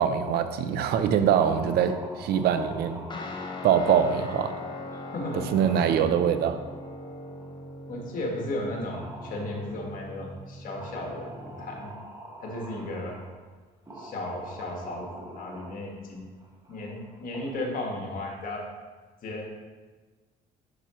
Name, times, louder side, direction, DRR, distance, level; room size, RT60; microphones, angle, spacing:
voice 1, 0.0-3.0 3.6-4.5 5.5-6.6, right 8 dB, 70° right, 10 dB, 0.5 m, -23 dB
sound 1, 1.0-8.1 8.5-8.6 8.9-10.1 10.8-13.3 13.9-17.5, right 1 dB, 20° right, 1.4 m, -45 dB
Guitar, 3.1-11.9, left 2 dB, 25° left, 0.7 m, -41 dB
voice 2, 5.1-6.0 7.9-11.9 12.4-13.2 14.0-16.3 16.7-18.7 19.2-19.4, left 1 dB, 55° left, 0 dB, 1.5 m, -35 dB
6.8 x 5.8 x 3.0 m, 1.4 s
cardioid pair, 110°, 17 cm